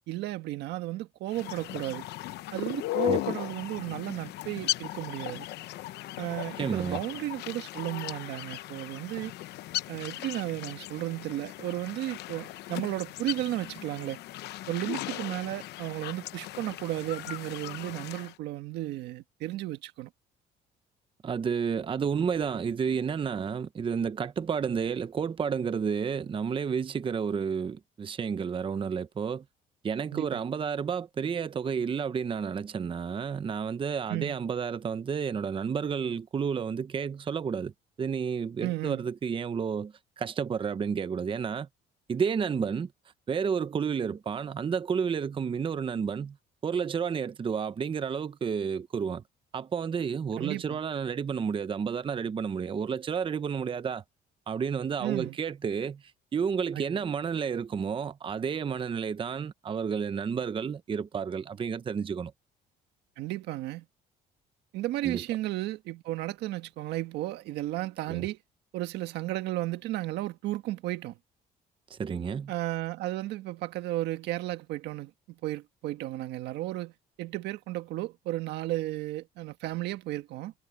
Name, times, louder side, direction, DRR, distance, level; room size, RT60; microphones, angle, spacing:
voice 1, 0.1-2.1 2.5-5.5 6.2-9.3 9.9-14.2 14.7-20.1 30.1-30.4 34.1-34.3 38.6-39.1 50.4-50.8 55.0-55.4 56.7-56.8 63.2-63.8 64.7-68.4 68.7-71.2 72.5-76.9 77.2-80.5, right 16 dB, 85° right, 1.6 m, -34 dB
sound 1, 1.3-18.3, left 16 dB, 80° left, 0.9 m, -37 dB
voice 2, 6.6-7.0 21.2-29.4 29.8-37.7 38.0-41.7 42.1-42.9 43.3-46.4 46.6-49.2 49.5-54.0 54.5-56.0 56.3-62.3 65.0-65.2 68.1-68.3 71.9-72.5, right 6 dB, 30° right, 0.8 m, -31 dB
cardioid pair, 110°, 17 cm